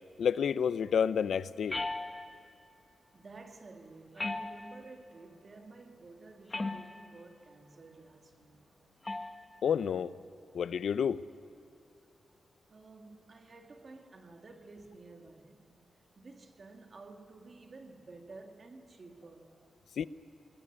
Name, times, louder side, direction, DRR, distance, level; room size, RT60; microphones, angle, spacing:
voice 1, 0.2-1.8 9.6-10.1 10.5-11.3 20.0-20.1, left 7 dB, 75° left, 0.5 m, -29 dB
sound 1, 1.7-2.5 4.2-5.0 6.5-7.2 9.1-9.5, left 2 dB, 20° left, 1.0 m, -37 dB
voice 2, 2.7-8.8 12.7-19.7, right 3 dB, 35° right, 2.1 m, -52 dB
21.0 x 20.0 x 9.9 m
wide cardioid pair, 160°, 0 cm